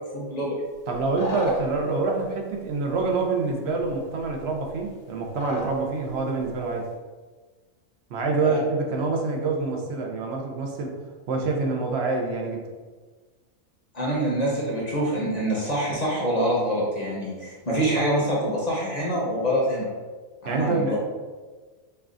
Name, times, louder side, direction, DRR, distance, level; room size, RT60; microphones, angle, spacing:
voice 1, 0.1-0.6 8.4-8.6 13.9-19.9 20.4-21.0, equal, 35° left, -5 dB, 0.8 m, -25 dB
Gray Cranes, 0.9-1.9 3.0-3.1 3.8-3.9 4.2-4.9 5.3-5.8 6.1-6.6, left 2 dB, 70° left, 1.0 m, -35 dB
voice 2, 0.9-6.9 8.1-11.0 11.3-12.7 20.4-21.0, right 3 dB, 60° right, 1 dB, 0.8 m, -26 dB
5.4 x 2.3 x 2.5 m, 1.4 s
omnidirectional pair, 1.4 m